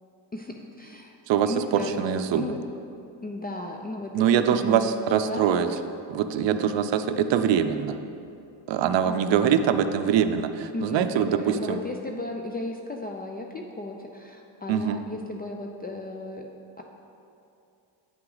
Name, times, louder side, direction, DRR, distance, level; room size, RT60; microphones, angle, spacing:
voice 1, 0.3-1.2 1.4-2.0 2.4-2.6 3.2-5.6 9.1-9.7 10.7-16.5 16.8-16.9, left 2 dB, 20° left, 2 dB, 0.4 m, -35 dB
voice 2, 1.3-2.4 4.1-5.7 6.1-8.0 8.7-11.8 14.7-15.0, right 8 dB, 60° right, 9 dB, 0.6 m, -23 dB
9.0 x 5.7 x 3.9 m, 2.6 s
cardioid pair, 85°, 49 cm